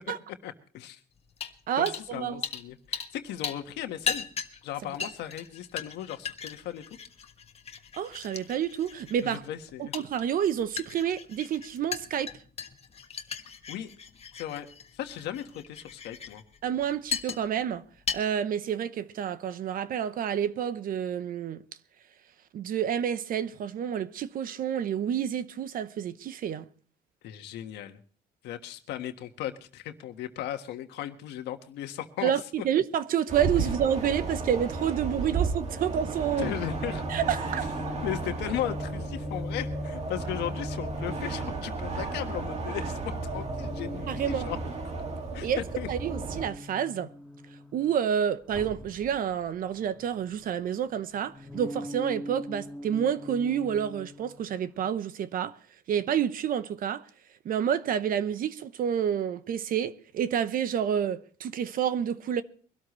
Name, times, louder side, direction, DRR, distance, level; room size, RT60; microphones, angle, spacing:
voice 1, 0.4-1.0 1.8-4.3 4.6-6.8 9.2-10.0 13.7-13.9 14.3-16.4 27.2-28.0 28.4-32.3 36.4-37.0 38.0-44.6 45.3-45.9, left 11 dB, 80° left, 1.5 m, -36 dB
sound 1, 1.4-1.6 1.9-2.1 2.4-3.2 3.4-17.7 18.0-18.2, left 6 dB, 35° left, 1.4 m, -37 dB
voice 2, 1.7-2.4 8.0-9.4 9.8-12.3 16.6-17.8 18.1-21.6 22.5-26.6 32.2-36.5 36.8-37.7 44.1-44.5 45.4-45.6 45.9-47.1 47.7-55.6 55.9-57.0 57.4-62.4, right 9 dB, 55° right, 0.9 m, -29 dB
sound 2, 33.3-46.5, right 3 dB, 40° right, 2.2 m, -34 dB
sound 3, 36.6-41.8 42.9-48.0 48.4-50.5 50.8-54.9, left 2 dB, 5° left, 1.9 m, -41 dB
23.0 x 13.0 x 3.2 m
cardioid pair, 110°, 17 cm